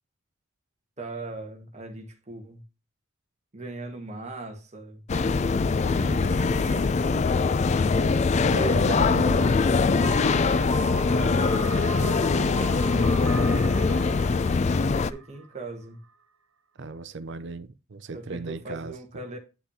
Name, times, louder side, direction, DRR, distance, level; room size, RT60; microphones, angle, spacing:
voice 1, 1.0-2.6 3.5-5.0 5.9-7.1 8.5-9.5 11.0-14.1 14.9-16.0 18.1-19.4, right 3 dB, 35° right, 1.6 m, -39 dB
sound 1, 5.1-15.1, left 4 dB, 35° left, 0.3 m, -22 dB
voice 2, 7.9-9.5 16.8-19.0, right 3 dB, 60° right, 0.6 m, -36 dB
sound 2, 9.8-15.6, right 4 dB, 75° right, 1.2 m, -38 dB
9.8 x 5.6 x 2.8 m
head